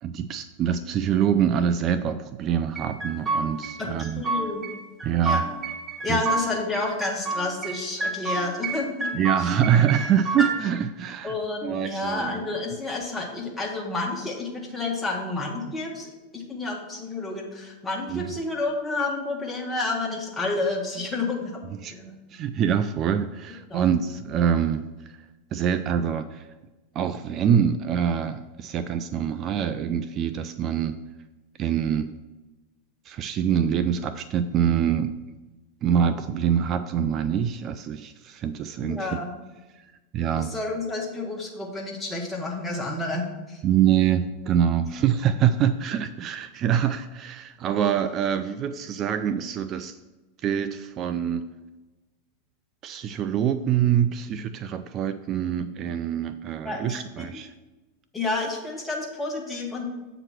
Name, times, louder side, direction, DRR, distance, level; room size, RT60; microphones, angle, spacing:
voice 1, 0.0-4.2 5.0-5.4 6.1-6.2 9.1-11.3 11.6-12.5 18.1-18.3 21.7-21.9 22.3-24.8 25.1-25.2 25.5-26.4 27.0-31.0 31.6-32.1 33.1-35.2 35.8-39.2 40.1-40.5 43.6-49.9 50.4-51.5 52.8-57.5, right 9 dB, 40° right, 11 dB, 0.3 m, -25 dB
sound 1, 2.8-3.7 4.0-4.7 5.0-6.5 6.8-7.7 8.0-8.8 9.0-10.5, right 3 dB, 15° right, 1.2 m, -28 dB
voice 2, 3.8-4.7 5.2-5.4 6.0-9.1 9.4-9.5 11.2-21.6 21.9-22.1 23.7-23.9 38.8-39.4 40.4-43.6 56.6-57.4 58.1-59.8, left 3 dB, 15° left, 0 dB, 1.5 m, -30 dB
7.7 x 3.0 x 6.0 m, 1.1 s
hypercardioid pair, 95°, 0 cm